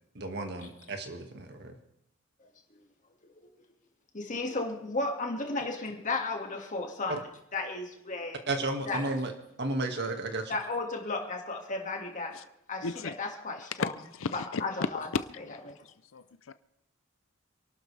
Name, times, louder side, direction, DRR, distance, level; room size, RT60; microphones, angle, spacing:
voice 1, 0.2-1.7 7.1-7.2 8.5-9.3 9.6-10.5, right 2 dB, 55° right, 2.0 m, -33 dB
voice 2, 4.1-7.2 7.5-8.4 8.9-9.0 10.5-12.4 12.7-13.9 14.3-15.1 15.7-15.8, left 3 dB, 40° left, 2.1 m, -34 dB
voice 3, 12.8-13.1 13.8-14.6 15.1-15.2 15.5-15.6 16.1-16.2, left 4 dB, 70° left, 0.6 m, -33 dB
27.0 x 12.0 x 3.4 m
head